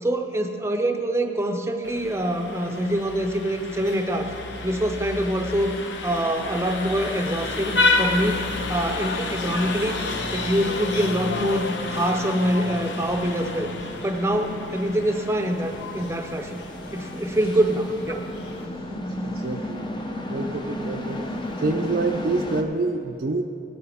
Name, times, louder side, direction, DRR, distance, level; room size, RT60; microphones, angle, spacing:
voice 1, 0.0-4.3 4.6-5.8 6.0-8.4 8.7-10.0 10.3-13.7 14.0-16.5 16.9-18.2, right 1 dB, 15° right, 5 dB, 0.7 m, -25 dB
Vehicle horn car horn honking, 1.8-18.7, left 3 dB, 80° left, 0.9 m, -30 dB
sound 1, 4.3-22.6, left 1 dB, 25° left, 0.7 m, -36 dB
voice 2, 18.9-19.9 20.3-21.2 21.6-23.4, right 3 dB, 55° right, 2 dB, 0.5 m, -27 dB
17.5 x 8.7 x 3.5 m, 2.7 s
head